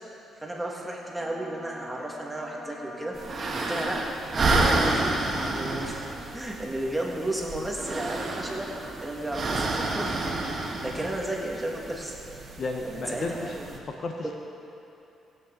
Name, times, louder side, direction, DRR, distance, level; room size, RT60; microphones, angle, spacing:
voice 1, 0.4-3.1 3.5-4.0 4.6-5.1 5.4-6.1 6.3-8.7 9.0-10.2 10.6-12.2 12.8-13.7, right 1 dB, 10° right, -2 dB, 1.9 m, -33 dB
Trumpet, 1.0-10.3, equal, 10° left, 2.4 m, -49 dB
sound 1, 3.2-13.8, right 2 dB, 45° right, 1.6 m, -30 dB
voice 2, 12.6-13.6 13.9-14.4, left 3 dB, 50° left, 3 dB, 1.0 m, -33 dB
17.0 x 8.6 x 3.9 m, 3.0 s
cardioid pair, 90°, 0 cm